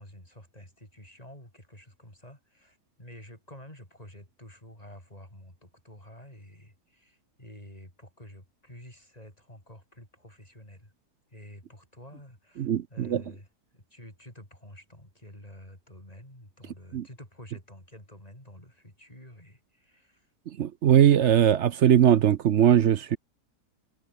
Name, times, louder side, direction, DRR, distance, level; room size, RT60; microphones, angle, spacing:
voice 1, 0.0-10.9 11.3-13.5 13.7-20.3, left 1 dB, 25° left, 7.6 m, -49 dB
voice 2, 12.6-13.2 16.9-17.0 20.6-23.2, right 10 dB, 60° right, 0.8 m, -20 dB
omnidirectional pair, 1.7 m